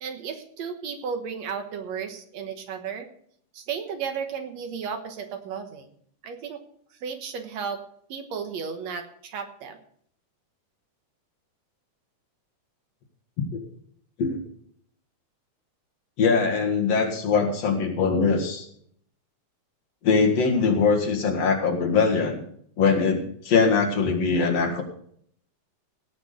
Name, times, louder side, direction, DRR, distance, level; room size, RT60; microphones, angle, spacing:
voice 1, 0.0-3.1 3.5-5.9 6.2-6.6 7.0-7.8 8.1-9.8, right 6 dB, 70° right, 6 dB, 2.3 m, -34 dB
voice 2, 16.2-18.7 20.0-22.4 22.8-24.8, left 5 dB, 60° left, 2 dB, 2.8 m, -22 dB
17.5 x 6.1 x 6.6 m, 0.65 s
omnidirectional pair, 3.4 m